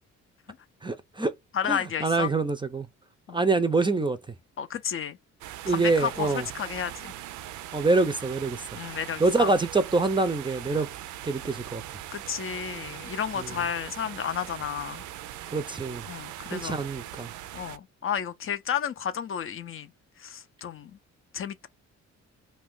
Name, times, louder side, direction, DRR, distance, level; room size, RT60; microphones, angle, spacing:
voice 1, 0.8-1.3 1.7-2.9 3.3-4.2 5.6-6.4 7.7-8.6 9.2-10.9 11.2-11.8 13.4-13.5 15.5-16.0 16.5-17.3, right 3 dB, 15° right, 0.5 m, -25 dB
voice 2, 1.5-2.3 3.3-3.4 4.6-5.2 5.7-7.1 8.7-9.5 12.1-15.0 16.1-16.8 17.5-19.9 20.2-21.0 21.3-21.7, left 8 dB, 45° left, 0.5 m, -32 dB
sound 1, 5.4-17.8, right 13 dB, 80° right, 0.5 m, -41 dB
2.5 x 2.3 x 3.5 m
cardioid pair, 90°, 30 cm